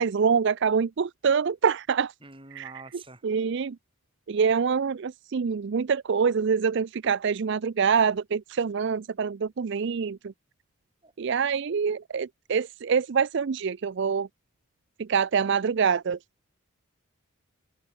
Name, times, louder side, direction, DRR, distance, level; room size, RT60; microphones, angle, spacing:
voice 1, 0.0-2.1 2.5-2.8 3.2-3.8 4.3-10.3 11.2-14.3 15.0-16.2, right 6 dB, 55° right, 0.4 m, -25 dB
voice 2, 2.2-3.2 11.0-11.1, right 3 dB, 25° right, 6.8 m, -46 dB
open air
head